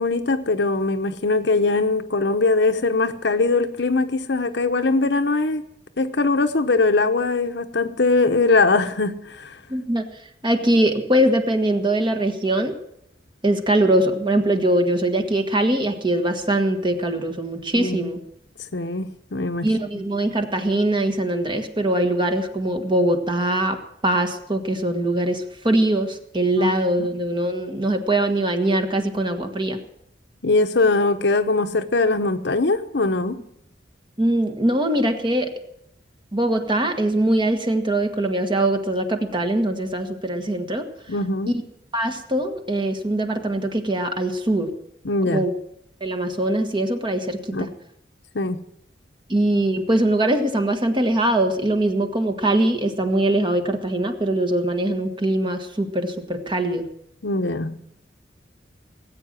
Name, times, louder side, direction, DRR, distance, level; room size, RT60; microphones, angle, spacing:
voice 1, 0.0-5.6 6.0-9.6 17.7-18.1 18.7-19.7 26.6-27.1 30.4-33.4 41.1-41.6 45.0-45.4 47.5-47.7 48.3-48.6 57.2-57.8, left 3 dB, 70° left, 1.0 m, -21 dB
voice 2, 9.7-10.1 10.4-12.7 13.4-18.2 19.6-23.8 24.0-29.8 34.2-35.5 36.3-40.9 41.5-41.6 41.9-44.7 45.3-45.5 46.0-47.7 49.3-56.9, right 1 dB, 25° right, 1.5 m, -22 dB
18.5 x 8.7 x 7.5 m
head